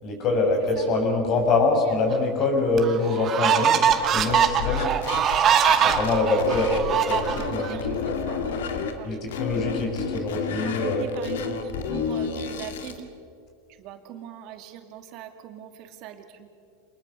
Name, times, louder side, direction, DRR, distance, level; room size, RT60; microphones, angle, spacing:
voice 1, 0.0-3.7 4.0-4.9 5.7-8.0 9.0-11.1, left 3 dB, 45° left, 2 dB, 6.6 m, -24 dB
sound 1, 2.1-2.2 2.8-7.7, right 8 dB, 35° right, 2.0 m, -22 dB
sound 2, 3.9-6.8 7.1-8.9 9.3-13.0, left 6 dB, 85° left, 2.2 m, -30 dB
voice 2, 7.3-8.6 9.0-9.5 10.6-13.1 13.8-16.5, right 9 dB, 55° right, 7 dB, 2.5 m, -40 dB
26.5 x 20.5 x 6.6 m, 2.4 s
supercardioid pair, 115°, 0 cm